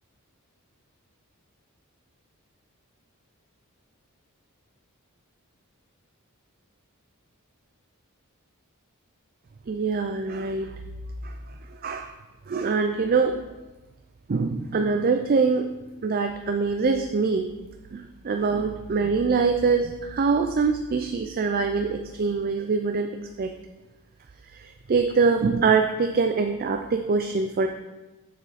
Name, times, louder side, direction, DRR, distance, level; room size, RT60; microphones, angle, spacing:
voice 1, 9.7-10.7 11.2-11.3 11.7-12.1 12.5-13.4 14.3-15.7 16.0-17.5 17.9-23.1 23.4-23.5 24.5-27.7, right 4 dB, 40° right, 6 dB, 0.4 m, -24 dB
7.0 x 6.3 x 4.1 m, 1.1 s
head